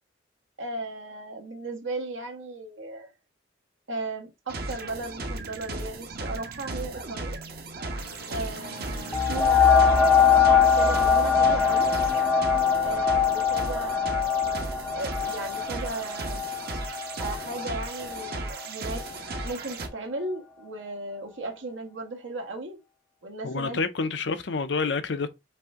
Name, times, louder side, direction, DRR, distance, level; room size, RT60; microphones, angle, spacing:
voice 1, 0.6-3.1 3.9-7.4 8.3-11.9 12.8-14.5 14.9-16.4 17.2-19.0 19.4-22.8 23.2-23.8, right 2 dB, 80° right, 1.5 m, -36 dB
sound 1, 4.5-19.9, right 2 dB, 50° right, 0.9 m, -36 dB
sound 2, 7.9-13.4, left 1 dB, 80° left, 1.7 m, -43 dB
sound 3, 9.1-18.4 19.0-19.1, left 6 dB, 5° left, 0.5 m, -22 dB
voice 2, 23.4-25.3, left 4 dB, 65° left, 0.6 m, -28 dB
5.5 x 2.7 x 3.6 m
head